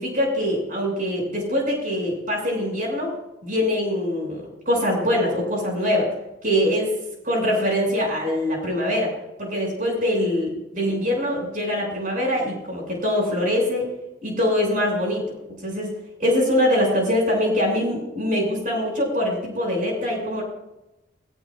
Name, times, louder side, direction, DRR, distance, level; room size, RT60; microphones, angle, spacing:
voice 1, 0.0-3.1 3.4-6.1 6.4-6.9 7.2-9.1 9.4-13.8 14.2-15.2 15.6-15.9 16.2-20.4, left 1 dB, 40° right, -1 dB, 6.6 m, -23 dB
19.0 x 17.5 x 2.5 m, 0.93 s
head